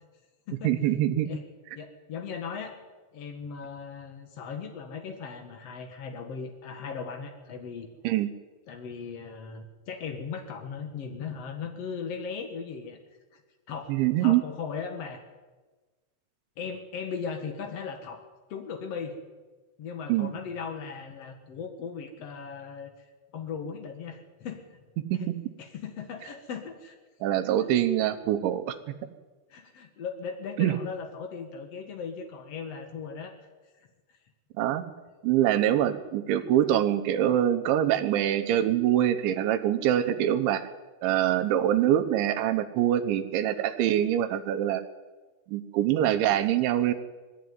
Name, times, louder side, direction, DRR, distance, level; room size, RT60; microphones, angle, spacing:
voice 1, 0.6-1.3 8.0-8.3 13.9-14.4 20.1-20.3 25.1-25.2 27.2-28.8 30.6-30.7 34.6-34.8 35.2-40.6 41.0-44.8 45.5-46.9, right 11 dB, 80° right, 8 dB, 3.2 m, -24 dB
voice 2, 1.7-2.8 3.1-7.9 8.7-13.0 13.3-13.4 13.7-13.9 14.2-15.2 16.6-18.2 18.5-19.2 19.8-23.1 23.3-24.8 25.1-25.3 25.6-27.0 29.5-33.3 33.8-33.9, left 6 dB, 70° left, 5 dB, 1.5 m, -38 dB
21.0 x 14.5 x 9.5 m, 1.3 s
omnidirectional pair, 5.4 m